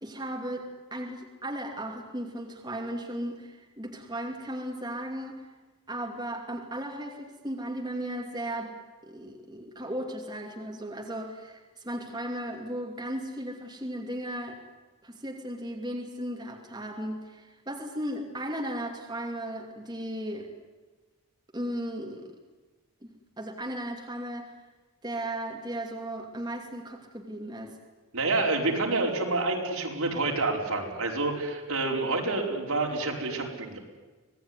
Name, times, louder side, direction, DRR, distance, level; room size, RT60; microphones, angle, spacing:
voice 1, 0.0-5.5 5.9-8.7 9.0-14.6 15.0-20.5 21.5-22.3 23.4-24.6 25.0-27.8, right 1 dB, 20° right, 1 dB, 2.6 m, -36 dB
voice 2, 28.1-33.8, right 3 dB, 75° right, 0 dB, 5.0 m, -28 dB
25.5 x 19.0 x 9.7 m, 1.3 s
head